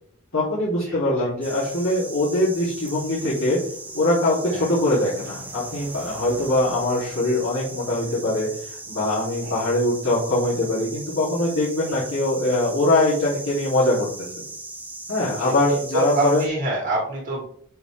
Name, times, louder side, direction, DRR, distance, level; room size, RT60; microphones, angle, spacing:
voice 1, 0.3-3.6 3.9-14.1 15.1-16.5, left 1 dB, 75° left, -11 dB, 2.9 m, -22 dB
sound 1, 1.4-16.5, right 2 dB, 10° right, 0.9 m, -38 dB
voice 2, 15.9-17.4, right 2 dB, 50° right, -3 dB, 1.9 m, -26 dB
7.7 x 6.0 x 3.5 m, 0.65 s
head